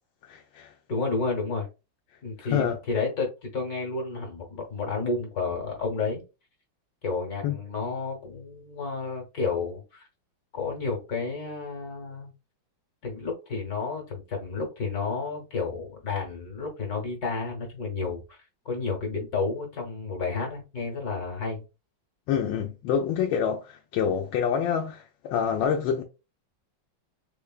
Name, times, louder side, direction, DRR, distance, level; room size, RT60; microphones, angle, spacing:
voice 1, 0.3-0.7 2.4-2.8 7.4-7.6 22.3-26.0, left 8 dB, 80° left, 1.3 m, -27 dB
voice 2, 0.9-1.7 2.2-6.2 7.0-10.1 10.5-12.3 13.0-18.4 18.6-21.6, left 4 dB, 55° left, 1.5 m, -31 dB
3.8 x 3.2 x 2.3 m
omnidirectional pair, 2.1 m